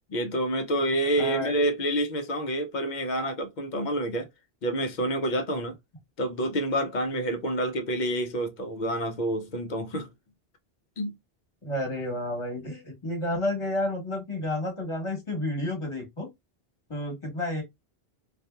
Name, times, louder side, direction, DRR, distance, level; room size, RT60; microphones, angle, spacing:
voice 1, 0.1-4.3 4.6-5.7 6.2-10.1 11.0-11.1, right 1 dB, 55° left, 0.7 m, -28 dB
voice 2, 1.2-1.5 11.6-16.3 16.9-17.6, left 1 dB, 30° left, 1.2 m, -30 dB
2.7 x 2.5 x 2.2 m
omnidirectional pair, 1.0 m